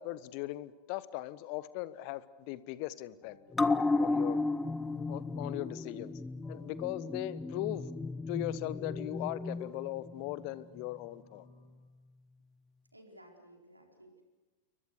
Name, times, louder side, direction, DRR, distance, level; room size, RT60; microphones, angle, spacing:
voice 1, 0.0-3.7 4.0-4.4 5.1-6.1 6.5-7.9 8.3-11.5, left 16 dB, 45° left, 17 dB, 1.2 m, -39 dB
sound 1, 0.7-0.9 1.6-11.8, left 3 dB, 30° left, 5.0 m, -65 dB
sound 2, 3.5-10.5 10.8-10.9, left 3 dB, 10° left, 0.8 m, -34 dB
voice 2, 12.9-14.2, right 1 dB, 85° right, 2 dB, 4.4 m, -56 dB
29.0 x 23.5 x 6.6 m, 1.2 s
figure-of-eight pair, 90°, 0 cm